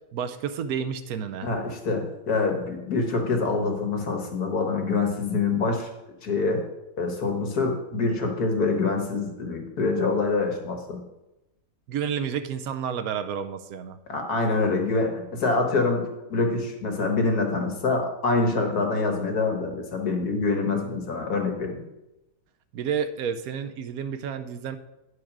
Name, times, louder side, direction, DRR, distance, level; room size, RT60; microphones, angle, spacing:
voice 1, 0.1-1.5 11.9-14.0 22.7-24.8, right 7 dB, 75° right, 10 dB, 1.1 m, -30 dB
voice 2, 1.4-5.9 6.2-6.6 7.0-11.0 14.1-21.8, left 3 dB, 85° left, 3 dB, 1.9 m, -25 dB
10.0 x 4.8 x 6.0 m, 0.95 s
omnidirectional pair, 1.6 m